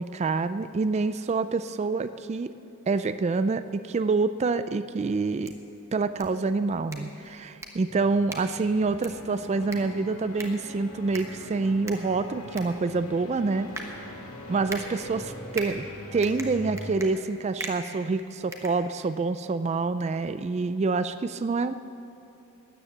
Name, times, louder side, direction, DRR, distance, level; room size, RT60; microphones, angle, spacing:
voice 1, 0.0-2.5 2.9-5.5 5.9-7.5 7.8-13.7 14.5-15.8 16.1-21.7, right 3 dB, 30° right, 12 dB, 0.3 m, -27 dB
sound 1, 5.2-19.4, right 2 dB, 15° right, 1.2 m, -43 dB
sound 2, 7.9-16.9, equal, 75° left, 1.9 m, -42 dB
13.0 x 9.9 x 7.3 m, 2.9 s
head